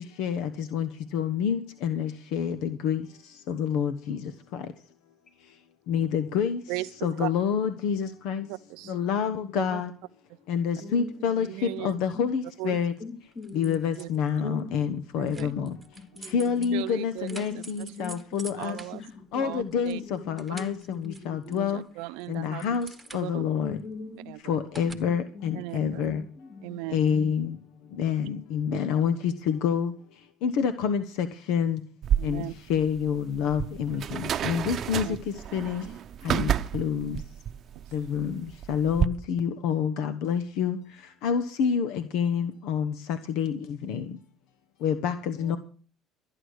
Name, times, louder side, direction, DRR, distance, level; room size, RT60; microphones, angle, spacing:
voice 1, 0.2-3.0 3.5-4.6 5.9-6.6 7.0-8.5 8.9-9.9 10.5-12.9 13.5-15.8 16.3-18.8 19.3-21.8 22.3-23.8 24.4-26.2 26.9-27.6 28.0-29.9 30.4-31.8 32.2-32.4 32.7-35.9 36.2-37.2 37.9-40.8 41.2-44.1 44.8-45.6, left 7 dB, 75° left, 1.0 m, -28 dB
voice 2, 6.7-7.3 8.5-8.9 9.5-9.8 11.4-12.0 12.6-12.8 14.0-14.1 15.2-15.5 16.7-18.2 18.6-19.0 19.4-20.0 21.5-22.6 23.1-23.4 24.3-24.6 25.5-26.1 26.6-27.0 28.7-28.8 32.2-32.5 35.0-35.2, right 19 dB, 80° right, 0.5 m, -37 dB
voice 3, 10.8-11.4 11.7-11.8 12.1-12.2 13.0-13.8 14.4-14.7 15.4-15.5 16.0-16.7 17.3-21.7 22.3-22.7 23.6-24.3 24.8-27.3, left 4 dB, 40° left, 3.7 m, -42 dB
sound 1, 13.3-14.4 15.3-20.0 20.3-21.8 22.2-23.6 24.7-25.0, right 3 dB, 15° right, 1.2 m, -47 dB
sound 2, 32.0-39.1, right 9 dB, 50° right, 0.7 m, -30 dB
13.5 x 9.9 x 6.4 m
supercardioid pair, 90°, 0 cm